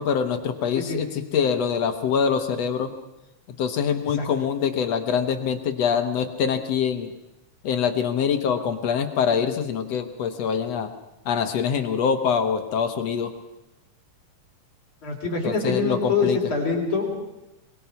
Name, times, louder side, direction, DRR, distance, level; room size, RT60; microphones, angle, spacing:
voice 1, 0.0-2.9 3.6-7.1 7.6-10.9 11.3-13.3 15.4-16.4, left 7 dB, 60° left, 7 dB, 1.9 m, -24 dB
voice 2, 15.0-17.1, left 4 dB, 40° left, -1 dB, 4.7 m, -25 dB
24.0 x 22.0 x 5.7 m, 0.93 s
omnidirectional pair, 3.9 m